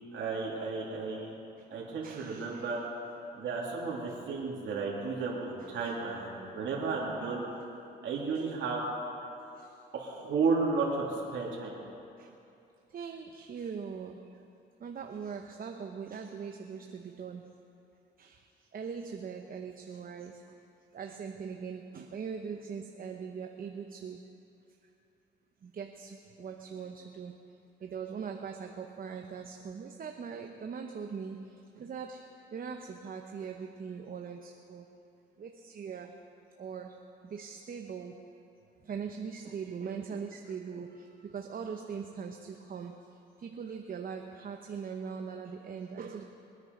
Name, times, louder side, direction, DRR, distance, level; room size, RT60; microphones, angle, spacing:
voice 1, 0.1-1.3 1.7-2.8 3.4-7.5 8.0-8.9 9.9-11.8, right 4 dB, 70° right, -4 dB, 2.9 m, -33 dB
voice 2, 2.0-2.8 5.6-5.9 8.3-8.5 12.2-12.3 12.9-14.2 14.8-17.4 18.2-18.4 18.7-20.4 20.9-24.2 25.6-27.3 27.8-31.5 31.8-32.2 32.5-34.8 35.4-36.1 36.6-36.9 37.3-38.2 38.9-43.0 43.4-46.3, right 6 dB, 45° right, 4 dB, 0.9 m, -41 dB
22.0 x 9.5 x 5.3 m, 2.7 s
cardioid pair, 90°, 20 cm